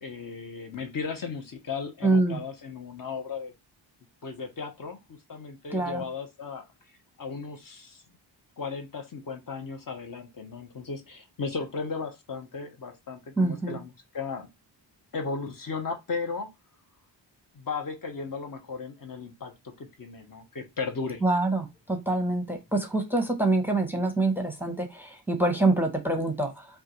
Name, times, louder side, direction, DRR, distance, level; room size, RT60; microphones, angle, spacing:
voice 1, 0.0-3.5 4.2-6.7 7.2-8.0 8.6-14.5 15.1-16.5 17.5-21.2, left 5 dB, 50° left, 0.9 m, -36 dB
voice 2, 2.0-2.4 5.7-6.0 13.4-13.8 21.2-26.7, right 2 dB, 5° right, 0.7 m, -25 dB
5.4 x 2.3 x 3.0 m
wide cardioid pair, 140°, 44 cm